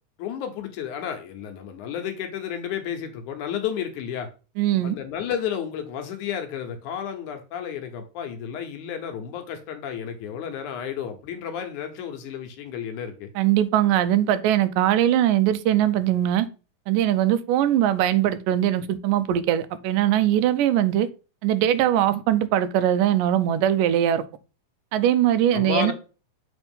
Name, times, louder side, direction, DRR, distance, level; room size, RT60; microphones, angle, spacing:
voice 1, 0.2-4.3 4.8-13.3 25.5-25.9, left 8 dB, 70° left, 2.1 m, -32 dB
voice 2, 4.6-5.0 13.4-16.5 16.9-21.1 21.4-24.2 24.9-25.9, right 11 dB, 80° right, 2.2 m, -21 dB
7.2 x 3.6 x 5.2 m
omnidirectional pair, 3.9 m